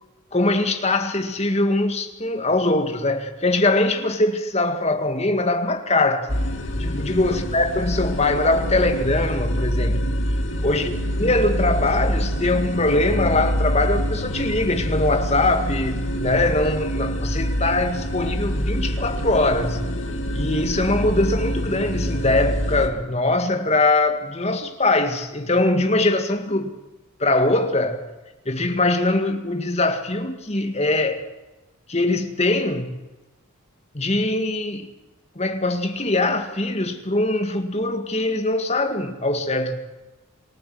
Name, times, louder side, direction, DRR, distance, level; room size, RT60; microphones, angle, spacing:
voice 1, 0.3-6.3 6.8-10.1 10.6-19.8 20.3-26.7 27.2-28.0 28.5-31.2 31.9-33.0 33.9-34.9 35.4-39.8, left 2 dB, 30° left, 1.9 m, -22 dB
sound 1, 6.3-22.9, equal, 60° left, 3.1 m, -25 dB
27.0 x 14.0 x 7.7 m
head